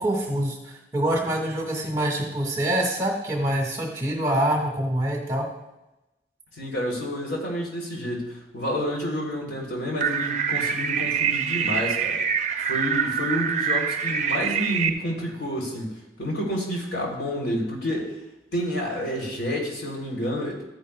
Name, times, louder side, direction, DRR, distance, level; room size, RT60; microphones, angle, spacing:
voice 1, 0.0-5.5, right 1 dB, 20° right, 0 dB, 1.8 m, -25 dB
voice 2, 6.6-12.2 12.6-18.1 18.5-20.6, equal, 75° left, -1 dB, 3.3 m, -29 dB
sound 1, 10.0-14.9, right 7 dB, 40° right, 0.5 m, -25 dB
14.5 x 9.8 x 2.3 m, 0.97 s
head